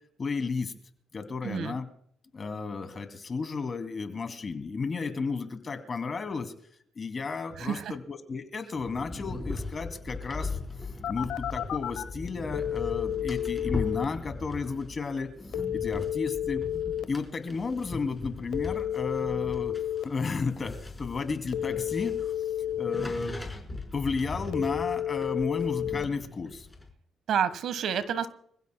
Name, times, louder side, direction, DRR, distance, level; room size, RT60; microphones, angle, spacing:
voice 1, 0.2-0.7 1.1-1.9 2.3-6.5 7.0-10.6 11.1-15.3 15.7-16.6 17.1-19.8 20.0-22.1 22.8-26.6, left 4 dB, 40° left, 7 dB, 2.6 m, -33 dB
voice 2, 1.4-1.7 7.6-7.9 27.3-28.3, right 8 dB, 70° right, 13 dB, 1.3 m, -29 dB
sound 1, 8.8-26.9, left 3 dB, 10° left, 4.1 m, -39 dB
Telephone, 11.0-12.0 12.5-14.0 15.5-17.0 18.5-20.0 21.5-23.0 24.5-26.0, left 11 dB, 80° left, 0.9 m, -31 dB
27.0 x 16.0 x 2.2 m, 0.65 s
cardioid pair, 90°, 0 cm